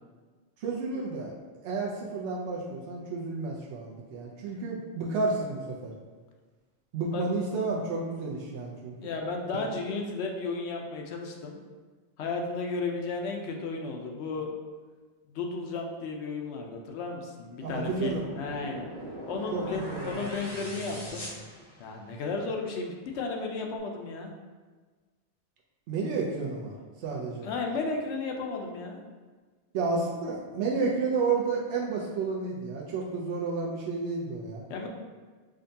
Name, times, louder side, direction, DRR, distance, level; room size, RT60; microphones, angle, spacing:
voice 1, 0.6-1.3 1.6-5.9 6.9-9.1 17.6-18.3 19.5-20.2 25.9-26.7 27.0-27.5 29.7-34.6, right 4 dB, 90° right, -3 dB, 0.9 m, -31 dB
voice 2, 9.0-11.6 12.2-14.6 15.3-18.9 19.3-21.3 21.8-24.3 27.3-29.0 34.7-34.9, left 3 dB, 80° left, 1 dB, 0.9 m, -34 dB
sound 1, 17.7-22.3, right 1 dB, 30° left, 0.5 m, -41 dB
5.0 x 2.2 x 2.7 m, 1.4 s
omnidirectional pair, 1.1 m